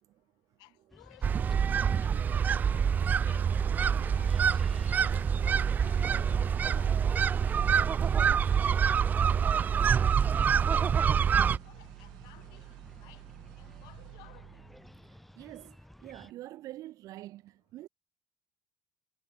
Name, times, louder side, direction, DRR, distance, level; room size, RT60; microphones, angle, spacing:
voice 1, 0.6-1.5 2.0-3.5 3.9-10.9 11.3-13.2 13.6-14.7, left 24 dB, 70° left, 5.7 m, -58 dB
sound 1, 0.9-16.3, left 1 dB, ahead, 2.7 m, -55 dB
sound 2, 1.2-11.6, right 7 dB, 25° right, 0.4 m, -26 dB
sound 3, 2.2-15.3, right 24 dB, 75° right, 5.3 m, -49 dB
voice 2, 15.3-17.9, right 15 dB, 55° right, 3.1 m, -46 dB
cardioid pair, 155°, 7 cm